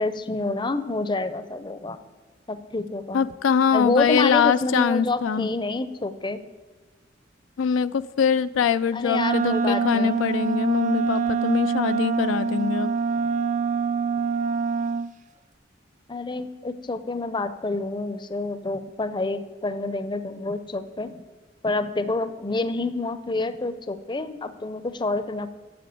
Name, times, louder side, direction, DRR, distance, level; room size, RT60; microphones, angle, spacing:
voice 1, 0.0-2.0 2.5-3.2 3.7-6.4 8.9-10.2 16.1-21.2 21.6-25.5, left 2 dB, 25° left, 12 dB, 0.6 m, -28 dB
voice 2, 3.1-5.5 7.6-12.9, left 7 dB, 75° left, 13 dB, 0.4 m, -23 dB
Wind instrument woodwind instrument, 9.1-15.1, right 5 dB, 40° right, 0.4 m, -25 dB
10.5 x 7.5 x 7.6 m, 1.4 s
head